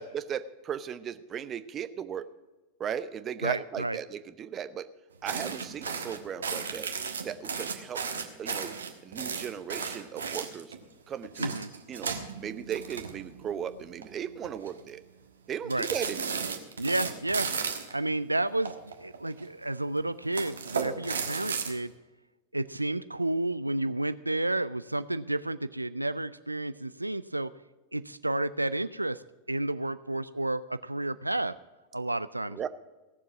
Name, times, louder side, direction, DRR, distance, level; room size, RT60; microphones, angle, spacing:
voice 1, 0.0-2.3 2.8-4.9 5.2-6.9 7.2-8.0 8.4-8.8 9.0-10.7 11.1-11.5 11.9-15.0 15.5-16.5 32.5-32.7, right 8 dB, 25° right, 14 dB, 0.7 m, -36 dB
voice 2, 3.4-4.0 11.4-11.7 15.7-15.9 16.8-17.5 17.9-21.9 22.5-27.5 27.9-29.2 29.5-31.5 31.9-32.7, right 2 dB, 85° right, 14 dB, 0.3 m, -31 dB
sound 1, 5.3-10.8 11.2-13.5 13.8-14.0 14.4-14.9 15.7-17.9 18.7-19.5 20.2-21.7, right 5 dB, 70° right, 1.3 m, -34 dB
16.5 x 7.3 x 6.1 m, 1.2 s
figure-of-eight pair, 90°, 0 cm